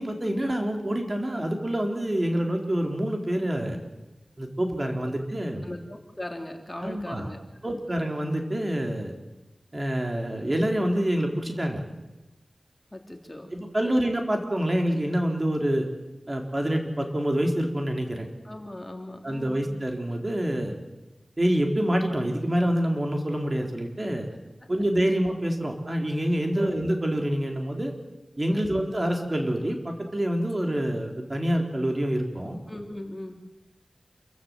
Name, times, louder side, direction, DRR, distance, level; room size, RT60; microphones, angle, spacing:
voice 1, 0.0-3.8 4.4-5.7 6.8-7.3 7.6-9.1 9.7-11.8 13.5-15.9 16.3-18.3 19.2-20.7 21.4-24.3 24.7-27.9 28.4-32.6, right 1 dB, 35° right, 3 dB, 3.9 m, -26 dB
voice 2, 5.6-7.8 12.9-13.5 13.8-13.9 18.4-19.8 24.6-24.7 26.5-26.7 28.5-28.7 32.7-33.4, left 1 dB, 25° left, 4 dB, 3.1 m, -39 dB
28.0 x 15.5 x 7.9 m, 1.1 s
wide cardioid pair, 50°, 0 cm